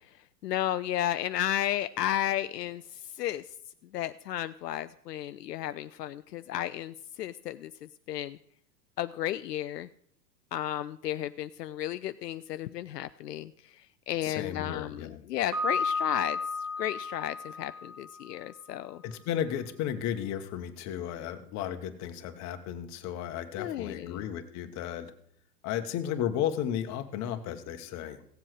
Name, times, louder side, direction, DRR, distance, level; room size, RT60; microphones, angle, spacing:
voice 1, 0.4-3.5 3.9-8.4 9.0-9.9 10.5-16.4 16.8-19.0 23.6-24.2, left 12 dB, 75° left, 12 dB, 0.5 m, -33 dB
voice 2, 14.2-15.2 19.0-25.1 25.6-28.2, left 10 dB, 35° left, 7 dB, 1.2 m, -34 dB
Piano, 15.5-18.4, left 3 dB, 65° right, 3.5 m, -33 dB
16.0 x 7.5 x 4.8 m, 0.68 s
figure-of-eight pair, 100°, 50 cm